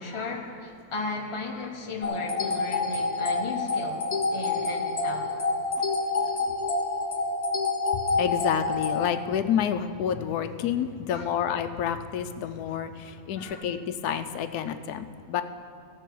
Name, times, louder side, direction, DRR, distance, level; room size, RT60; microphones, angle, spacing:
voice 1, 0.0-5.4 11.1-11.3 13.4-13.6, left 3 dB, 25° left, 1 dB, 0.9 m, -35 dB
sound 1, 2.0-9.1, left 3 dB, 40° left, 0.6 m, -28 dB
voice 2, 8.1-15.4, left 8 dB, 90° left, 10 dB, 1.1 m, -29 dB
16.0 x 6.8 x 4.6 m, 2.3 s
omnidirectional pair, 1.6 m